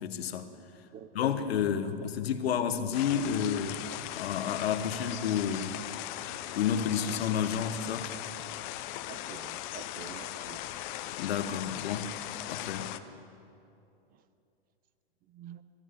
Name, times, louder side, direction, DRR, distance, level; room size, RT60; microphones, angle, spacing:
voice 1, 0.0-0.5 1.1-3.9 4.1-5.7 6.5-8.1 11.2-12.1 12.5-12.9, left 8 dB, 75° left, 10 dB, 1.1 m, -30 dB
sound 1, 2.9-13.0, left 14 dB, 50° left, 0.7 m, -39 dB
voice 2, 9.1-10.7 15.3-15.6, right 10 dB, 30° right, 13 dB, 0.6 m, -47 dB
21.0 x 12.0 x 3.7 m, 2.6 s
hypercardioid pair, 115°, 31 cm